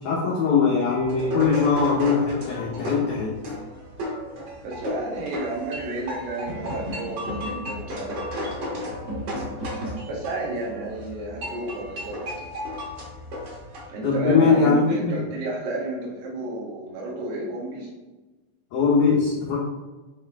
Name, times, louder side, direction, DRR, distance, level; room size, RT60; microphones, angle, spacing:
voice 1, 0.0-3.4 14.0-15.2 18.7-19.6, left 5 dB, 85° left, -4 dB, 1.7 m, -21 dB
sound 1, 0.9-13.8, equal, 55° right, 1.6 m, -34 dB
voice 2, 4.6-9.0 10.1-12.5 13.9-17.9, right 2 dB, 70° right, -3 dB, 3.2 m, -32 dB
8.6 x 3.3 x 3.5 m, 1.2 s
omnidirectional pair, 4.9 m